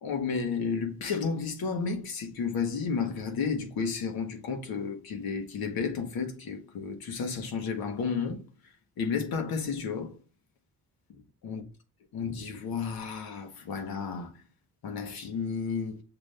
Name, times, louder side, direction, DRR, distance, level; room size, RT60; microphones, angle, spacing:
voice 1, 0.0-8.5 9.0-10.2 11.4-11.6 12.1-14.3 14.8-16.0, left 5 dB, 85° left, 1.1 m, -32 dB
5.9 x 2.6 x 3.3 m
cardioid pair, 75°, 35 cm